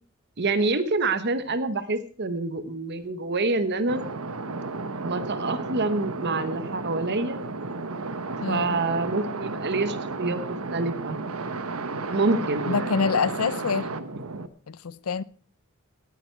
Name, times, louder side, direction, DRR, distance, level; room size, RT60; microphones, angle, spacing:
voice 1, 0.4-4.0 5.0-7.4 8.5-11.2 12.1-12.9, right 3 dB, 50° right, 1.1 m, -27 dB
sound 1, 3.9-14.5, right 3 dB, 80° right, 1.1 m, -33 dB
voice 2, 8.4-8.8 12.7-13.9 14.7-15.2, left 5 dB, 80° left, 0.6 m, -26 dB
18.5 x 10.0 x 4.5 m
head